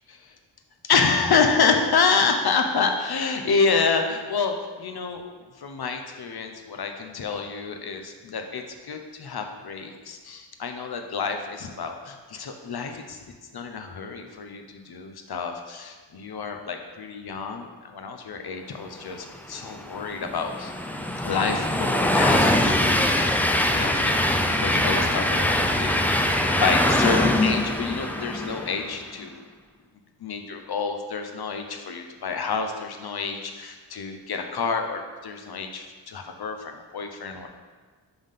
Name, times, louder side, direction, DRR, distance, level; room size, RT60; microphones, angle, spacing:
voice 1, 0.8-5.2 5.6-13.2 13.5-20.7 21.2-26.0 26.6-29.4 30.2-37.5, left 5 dB, 60° left, 5 dB, 0.7 m, -28 dB
Train, 19.5-29.0, left 1 dB, 5° left, 0.3 m, -23 dB
5.4 x 3.5 x 5.6 m, 1.4 s
wide cardioid pair, 80°, 44 cm